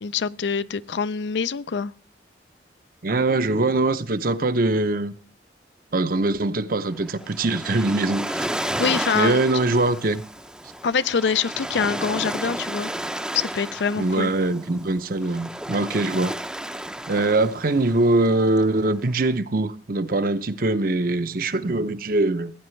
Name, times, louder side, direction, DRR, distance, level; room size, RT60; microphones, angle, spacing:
voice 1, 0.0-1.9 8.6-9.4 10.8-12.9 13.3-14.3, left 6 dB, 75° left, 0.5 m, -25 dB
voice 2, 3.0-5.1 5.9-8.5 9.1-10.2 14.0-16.3 17.1-22.5, right 2 dB, 50° right, 0.7 m, -22 dB
Waves surf, 6.9-19.3, right 1 dB, 5° right, 0.5 m, -33 dB
17.0 x 9.9 x 3.2 m
head